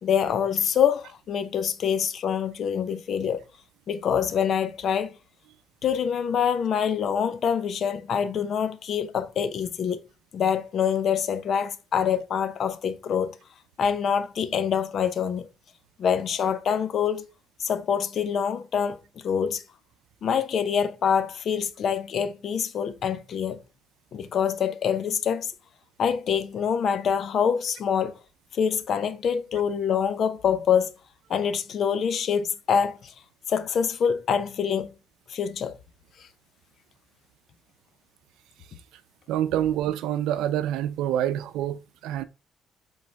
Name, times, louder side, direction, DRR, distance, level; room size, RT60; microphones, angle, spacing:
voice 1, 0.0-3.4 3.9-5.2 5.8-10.0 10.3-13.3 13.8-15.5 16.0-17.3 17.6-19.0 19.2-19.6 20.2-23.6 24.1-25.5 26.0-28.2 28.5-30.9 31.3-33.1 33.5-34.9 35.3-35.7, left 7 dB, 60° left, 0.8 m, -25 dB
voice 2, 39.3-42.2, right 11 dB, 85° right, 0.5 m, -27 dB
7.7 x 3.8 x 3.5 m
cardioid pair, 95°, 0 cm